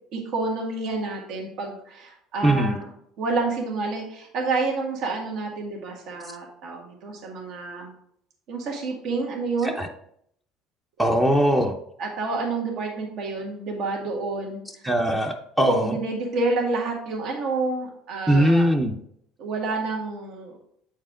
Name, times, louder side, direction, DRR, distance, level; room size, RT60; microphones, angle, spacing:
voice 1, 0.1-2.9 3.2-7.9 8.5-9.8 12.0-14.6 15.6-18.7 19.4-20.6, right 3 dB, 65° right, 0 dB, 1.8 m, -28 dB
voice 2, 2.4-2.8 9.6-9.9 11.0-11.7 14.8-15.9 18.3-18.9, right 1 dB, 10° right, 3 dB, 0.7 m, -21 dB
8.2 x 4.7 x 3.7 m, 0.69 s
cardioid pair, 125°, 0 cm